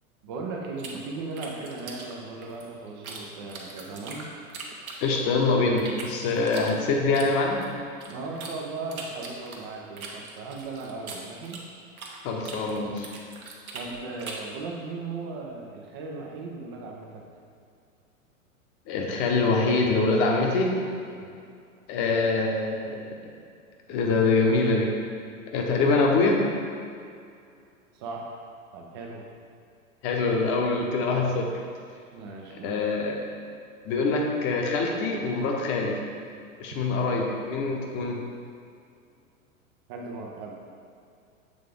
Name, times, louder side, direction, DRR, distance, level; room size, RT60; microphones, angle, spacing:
voice 1, 0.2-4.3 8.1-11.6 13.7-17.3 21.1-21.3 27.9-28.4 28.7-29.3 32.1-32.9 39.9-40.5, right 3 dB, 20° right, 0 dB, 0.3 m, -37 dB
sound 1, 0.8-3.2 3.5-5.4 5.8-8.5 8.9-12.2 12.4-14.5, right 4 dB, 75° right, 1.1 m, -41 dB
voice 2, 5.0-7.6 12.2-13.1 18.9-20.8 21.9-23.0 23.9-24.9 25.5-26.4 30.0-31.5 32.6-33.2 33.8-36.0 36.6-38.2, left 3 dB, 30° left, 1 dB, 0.9 m, -24 dB
7.8 x 3.7 x 3.5 m, 2.4 s
figure-of-eight pair, 105°, 43 cm